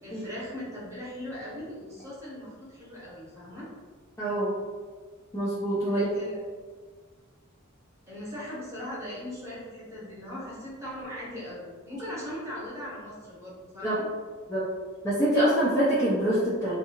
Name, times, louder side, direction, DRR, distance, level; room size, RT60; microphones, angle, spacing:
voice 1, 0.0-3.7 5.9-6.4 8.1-14.0, left 1 dB, 15° right, -8 dB, 0.9 m, -39 dB
voice 2, 4.2-4.5 5.3-6.1 13.8-14.0 14.5-14.7 15.0-16.8, right 1 dB, 15° left, -9 dB, 0.4 m, -25 dB
2.6 x 2.3 x 2.8 m, 1.5 s
head